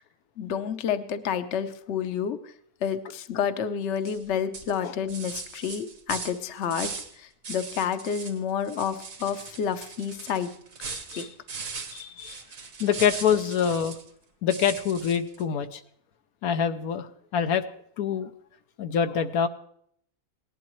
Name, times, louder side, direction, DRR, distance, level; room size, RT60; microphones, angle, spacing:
voice 1, 0.4-2.4 2.8-6.9 7.2-10.5 11.2-11.3, left 8 dB, 55° left, 10 dB, 1.0 m, -29 dB
sound 1, 4.0-4.2 4.5-7.1 7.4-8.4 8.6-14.1 14.5-15.4, right 5 dB, 60° right, 1.8 m, -39 dB
voice 2, 10.9-11.3 11.9-12.4 12.8-14.0 14.4-15.8 16.4-17.7 18.0-18.3 18.8-19.5, left 7 dB, 75° left, 8 dB, 1.2 m, -26 dB
18.5 x 11.5 x 3.1 m, 0.66 s
omnidirectional pair, 1.6 m